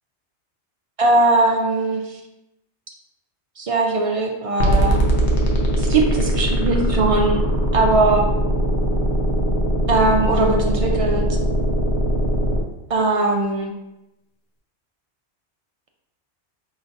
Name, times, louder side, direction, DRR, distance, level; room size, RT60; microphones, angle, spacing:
voice 1, 1.0-2.0 3.6-5.0 5.8-7.4 7.7-8.3 9.9-11.2 12.9-13.7, right 2 dB, 60° right, 1 dB, 0.3 m, -19 dB
sound 1, 4.6-12.6, right 1 dB, 80° left, 1.0 m, -20 dB
5.1 x 3.0 x 2.5 m, 0.93 s
omnidirectional pair, 1.1 m